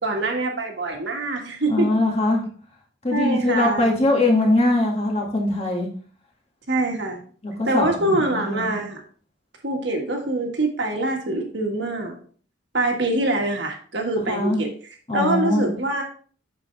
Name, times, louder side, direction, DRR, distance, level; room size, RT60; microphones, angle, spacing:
voice 1, 0.0-1.9 3.1-3.9 6.7-7.2 7.7-9.0 9.6-12.2 12.7-14.7 15.1-16.0, right 2 dB, 60° right, 2 dB, 1.6 m, -24 dB
voice 2, 1.7-2.5 3.0-5.9 7.4-8.8 14.3-14.6 15.1-15.7, left 2 dB, 30° left, 0 dB, 1.8 m, -21 dB
7.9 x 6.1 x 3.3 m, 0.44 s
head